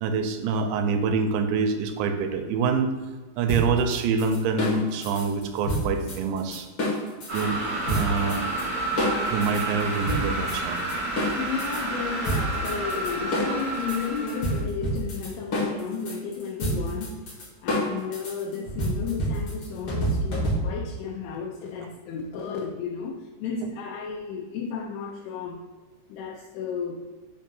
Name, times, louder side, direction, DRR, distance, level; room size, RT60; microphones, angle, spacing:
voice 1, 0.0-2.9 3.4-6.7 7.3-8.4 9.3-10.8, right 5 dB, 80° right, 6 dB, 2.7 m, -26 dB
sound 1, 3.5-7.4 7.9-8.6 9.0-11.8 12.2-20.9, equal, 70° left, 1.2 m, -28 dB
sound 2, 7.3-14.6, right 2 dB, 60° right, 1.0 m, -30 dB
voice 2, 11.4-25.6 26.1-27.0, left 6 dB, 90° left, 0 dB, 3.1 m, -33 dB
7.3 x 2.7 x 5.3 m, 1.3 s
omnidirectional pair, 5.4 m